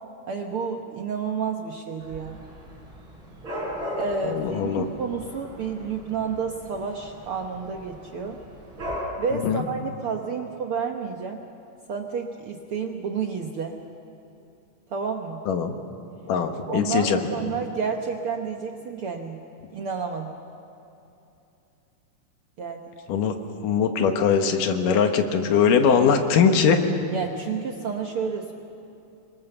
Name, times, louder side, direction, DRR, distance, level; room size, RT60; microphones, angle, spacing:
voice 1, 0.3-2.4 4.0-8.4 9.2-11.4 11.9-13.8 14.9-15.4 16.7-19.4 19.7-20.3 22.6-22.9 27.1-28.5, right 5 dB, 65° right, 3 dB, 1.4 m, -30 dB
Dog / Cat, 2.0-9.0, equal, 35° right, 6.4 m, -38 dB
voice 2, 4.2-4.9 9.4-9.7 15.5-15.8 16.3-17.2 23.1-23.3 23.6-26.8, left 6 dB, 75° left, 6 dB, 2.9 m, -21 dB
26.5 x 22.0 x 7.0 m, 2.8 s
omnidirectional pair, 3.8 m